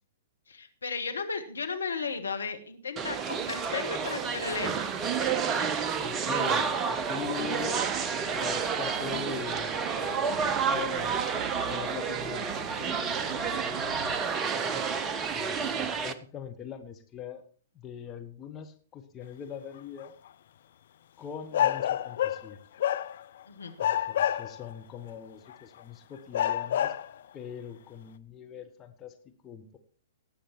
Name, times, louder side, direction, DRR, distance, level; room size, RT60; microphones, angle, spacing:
voice 1, 0.5-4.7 14.6-14.8 23.5-23.7, left 5 dB, 70° left, 7 dB, 1.5 m, -35 dB
sound 1, 3.0-16.1, right 6 dB, 20° right, 0.8 m, -30 dB
voice 2, 6.0-7.8 8.3-14.2 15.3-17.4 17.7-20.1 21.2-22.6 23.8-26.9 27.3-29.1 29.4-29.8, left 7 dB, 20° left, 5 dB, 1.3 m, -42 dB
sound 2, 6.5-14.2, right 5 dB, 55° right, 2.0 m, -46 dB
sound 3, 20.0-20.1 21.5-22.5 22.8-23.4 23.8-24.7 25.5-25.6 26.3-27.1, left 10 dB, 50° left, 0.5 m, -28 dB
18.0 x 7.3 x 4.5 m, 0.42 s
figure-of-eight pair, 110°, 0 cm